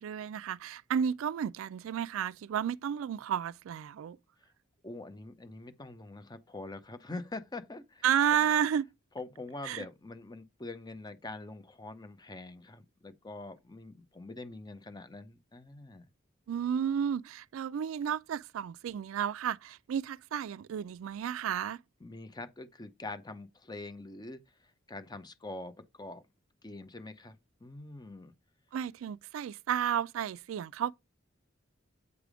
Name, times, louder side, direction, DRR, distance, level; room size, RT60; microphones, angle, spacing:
voice 1, 0.0-4.2 8.0-8.9 9.6-9.9 16.5-21.8 28.7-30.9, right 8 dB, 75° right, 0.3 m, -32 dB
voice 2, 4.8-8.0 9.1-16.1 22.0-26.2 26.6-27.4 27.6-28.3, left 2 dB, 20° left, 0.7 m, -44 dB
8.1 x 3.4 x 4.9 m
head